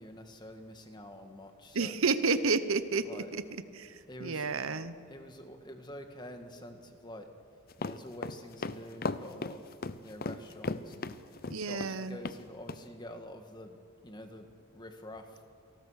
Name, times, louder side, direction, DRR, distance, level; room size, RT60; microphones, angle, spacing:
voice 1, 0.0-2.0 3.0-3.3 4.1-4.5 5.1-7.3 7.8-9.7 10.0-11.1 11.5-13.8 14.0-15.4, left 1 dB, 20° left, 6 dB, 1.7 m, -47 dB
voice 2, 1.7-3.4 3.7-4.9 11.5-12.2, right 4 dB, 70° right, 12 dB, 1.0 m, -31 dB
sound 1, 7.7-12.0 12.2-12.4 12.7-12.8, left 3 dB, 40° left, 0.7 m, -36 dB
28.5 x 18.5 x 6.5 m, 2.3 s
head